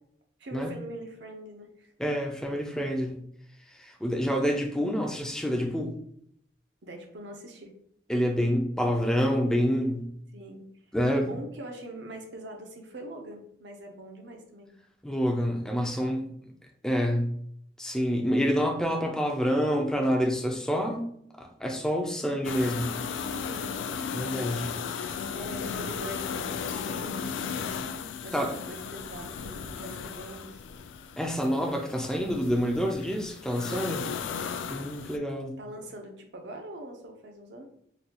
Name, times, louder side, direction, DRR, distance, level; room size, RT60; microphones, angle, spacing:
voice 1, 0.4-1.9 6.8-7.7 10.3-10.7 11.3-14.7 23.4-23.7 25.3-27.8 28.2-30.6 34.0-34.2 35.6-37.7, right 1 dB, 75° right, 3 dB, 0.7 m, -43 dB
voice 2, 2.0-3.2 3.7-5.9 8.1-10.1 10.9-11.4 15.0-16.3 16.8-17.4 17.8-21.1 21.4-22.9 24.1-24.7 28.3-28.5 31.2-34.0 34.7-35.6, equal, 5° left, 2 dB, 0.4 m, -27 dB
sound 1, 22.4-35.2, left 6 dB, 90° left, 0.3 m, -35 dB
3.9 x 2.3 x 2.8 m, 0.70 s
head